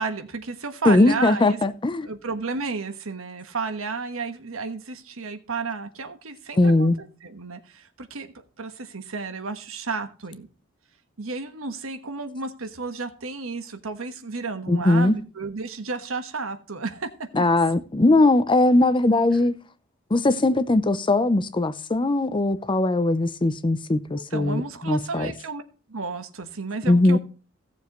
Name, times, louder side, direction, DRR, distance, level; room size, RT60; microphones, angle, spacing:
voice 1, 0.0-1.6 2.0-10.5 11.2-17.4 24.1-25.6 25.9-27.2, right 4 dB, 85° right, 1.3 m, -32 dB
voice 2, 0.8-2.1 6.6-7.0 14.7-15.2 17.3-19.5 20.1-25.3 26.9-27.2, left 2 dB, 25° left, 0.6 m, -20 dB
16.5 x 7.2 x 3.1 m
head